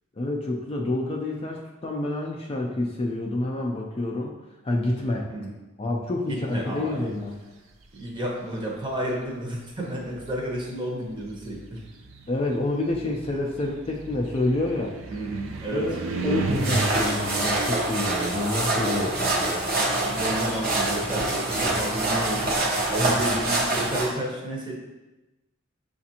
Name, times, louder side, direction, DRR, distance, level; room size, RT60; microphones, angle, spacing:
voice 1, 0.2-4.3 4.6-5.3 5.8-7.3 12.3-14.9 15.7-19.6 23.0-23.4, left 2 dB, 25° left, 0 dB, 0.4 m, -28 dB
voice 2, 6.3-7.1 7.9-11.8 15.1-15.9 19.8-22.5 22.9-24.7, right 1 dB, 25° right, -2 dB, 0.9 m, -32 dB
sound 1, 7.7-8.2 9.2-9.3 9.9-19.8 20.1-22.7, right 3 dB, 65° right, 0.4 m, -35 dB
sound 2, 16.5-24.1, right 2 dB, 50° right, 0.8 m, -25 dB
6.9 x 2.5 x 2.8 m, 1.1 s
head